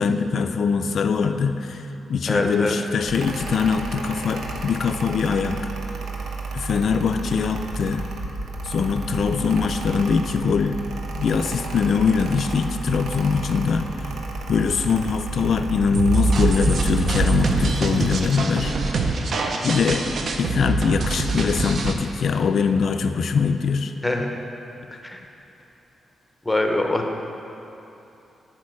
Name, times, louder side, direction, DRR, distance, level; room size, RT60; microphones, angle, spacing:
voice 1, 0.0-1.8 2.1-5.6 6.5-8.0 8.7-10.8 11.2-13.9 14.5-18.7 19.6-20.0 20.4-23.9, left 5 dB, 55° left, 7 dB, 0.3 m, -22 dB
voice 2, 2.3-2.8 24.0-24.3 25.0-25.2 26.5-27.2, left 2 dB, 10° left, 3 dB, 0.7 m, -23 dB
Mechanical fan, 3.1-18.4, right 2 dB, 85° right, 0.8 m, -32 dB
sound 1, 15.9-21.9, right 3 dB, 55° right, 0.6 m, -24 dB
12.0 x 4.6 x 4.8 m, 3.0 s
wide cardioid pair, 160°, 0 cm